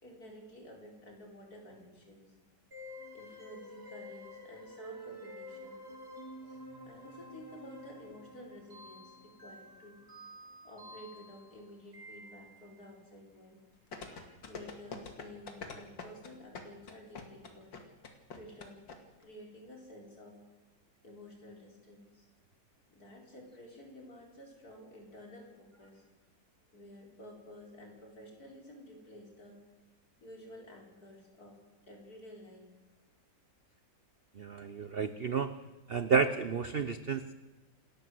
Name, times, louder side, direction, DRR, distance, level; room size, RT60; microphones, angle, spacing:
voice 1, 0.0-2.3 3.1-5.8 6.4-10.2 10.6-13.6 14.4-17.7 18.3-18.8 19.1-20.4 21.0-22.3 22.9-26.1 26.7-29.6 30.2-31.6 31.8-32.8, left 1 dB, 55° left, 1 dB, 4.9 m, -52 dB
sound 1, 2.7-12.9, equal, 35° right, 3.4 m, -50 dB
sound 2, 13.9-19.0 19.2-19.3, left 4 dB, 90° left, 2.9 m, -44 dB
voice 2, 34.4-35.5 35.9-37.3, right 5 dB, 50° right, 12 dB, 0.7 m, -31 dB
28.0 x 12.5 x 7.8 m, 1.2 s
omnidirectional pair, 1.9 m